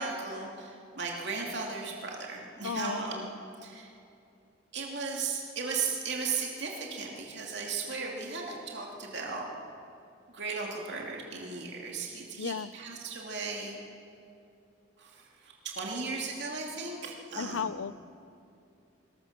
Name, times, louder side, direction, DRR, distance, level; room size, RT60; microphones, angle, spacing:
voice 1, 0.0-3.3 3.6-3.9 4.7-9.5 10.3-13.8 15.0-17.7, right 4 dB, 55° right, -1 dB, 2.7 m, -36 dB
voice 2, 2.6-3.0 12.4-12.7 17.4-17.9, left 6 dB, 80° left, 17 dB, 0.5 m, -34 dB
21.0 x 20.0 x 6.7 m, 2.6 s
head